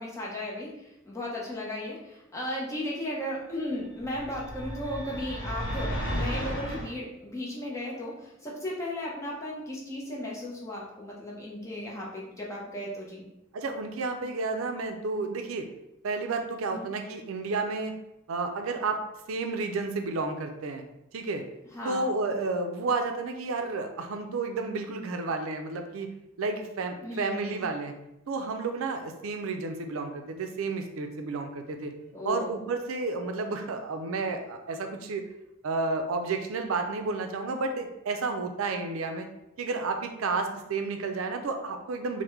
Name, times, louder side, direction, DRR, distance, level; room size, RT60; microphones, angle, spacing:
voice 1, 0.0-13.3 16.7-16.9 21.7-22.1 27.0-27.6 32.1-32.6, left 1 dB, 15° left, -4 dB, 0.6 m, -35 dB
sound 1, 4.0-6.9, equal, 65° left, 0.8 m, -33 dB
voice 2, 13.5-15.7 16.0-17.9 18.3-19.0 19.3-20.8 21.1-21.4 21.8-26.1 26.4-27.9 28.3-31.9 32.2-35.2 35.6-39.3 39.6-42.2, right 3 dB, 80° right, 5 dB, 0.4 m, -31 dB
3.4 x 2.1 x 3.1 m, 0.87 s
head